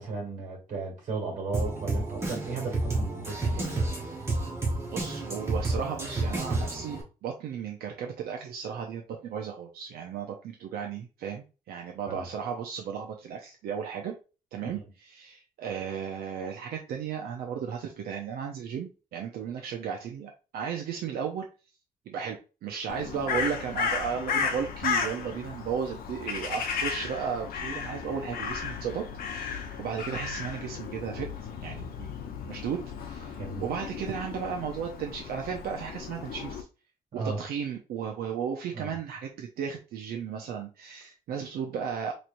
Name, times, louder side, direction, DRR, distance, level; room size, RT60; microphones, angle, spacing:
voice 1, 0.0-3.8 12.1-12.3 14.6-14.8 33.4-33.7 37.1-37.4 38.7-38.9, right 3 dB, 55° right, 2.0 m, -35 dB
Drum kit, 1.5-7.0, right 2 dB, 15° right, 1.1 m, -30 dB
voice 2, 4.9-14.1 14.5-21.4 22.1-31.3 31.6-32.1 32.5-36.7 37.1-42.1, right 7 dB, 85° right, 0.6 m, -35 dB
Crow, 22.9-36.6, left 6 dB, 75° left, 0.8 m, -34 dB
4.4 x 3.2 x 2.6 m
cardioid pair, 180°, 15 cm